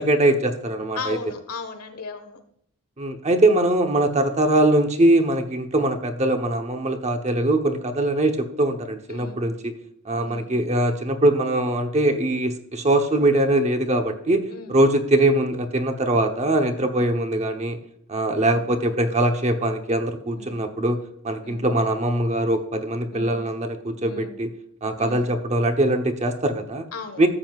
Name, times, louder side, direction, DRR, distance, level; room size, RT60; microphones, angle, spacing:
voice 1, 0.0-1.2 3.0-9.7 10.0-17.8 18.1-21.0 21.2-24.5 24.8-26.9 27.2-27.3, right 1 dB, 30° right, 5 dB, 0.9 m, -22 dB
voice 2, 0.9-2.4 9.1-9.5 10.2-10.5 14.5-14.8 16.7-16.9 20.3-20.6 21.4-21.7 23.1-23.4 24.0-24.4 25.0-25.2 26.9-27.2, left 3 dB, 90° left, 7 dB, 1.4 m, -36 dB
13.5 x 7.8 x 2.4 m, 0.69 s
head